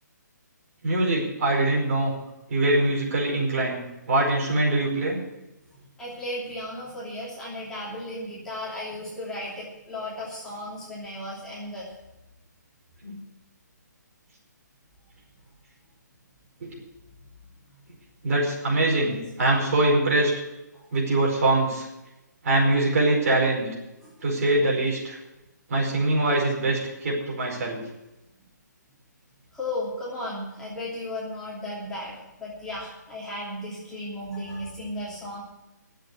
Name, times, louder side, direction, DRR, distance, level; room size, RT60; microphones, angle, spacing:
voice 1, 0.8-2.1 2.5-3.8 4.1-5.2 13.0-13.2 16.6-16.8 18.2-20.3 20.9-21.9 22.4-23.7 24.2-25.2 25.7-27.8, right 2 dB, 50° right, -1 dB, 4.9 m, -23 dB
voice 2, 6.0-11.9 19.0-19.2 20.7-20.8 24.0-24.1 29.5-35.4, left 1 dB, 5° left, -8 dB, 3.0 m, -35 dB
11.5 x 7.7 x 9.5 m, 0.97 s
hypercardioid pair, 155°, 10 cm